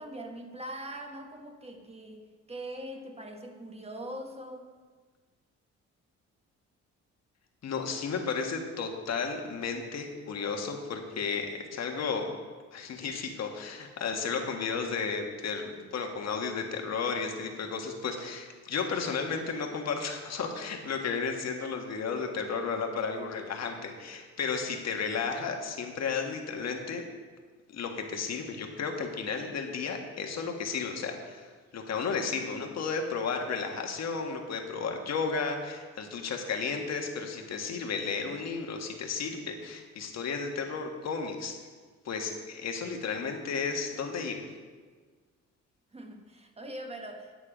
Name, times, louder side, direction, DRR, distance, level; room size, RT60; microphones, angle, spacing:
voice 1, 0.0-4.8 45.9-47.3, right 1 dB, 20° right, 4 dB, 1.3 m, -42 dB
voice 2, 7.6-12.3 12.7-27.0 27.7-41.6 42.1-44.5, left 5 dB, 60° left, 3 dB, 1.6 m, -33 dB
9.4 x 8.6 x 5.0 m, 1.5 s
cardioid pair, 90°, 30 cm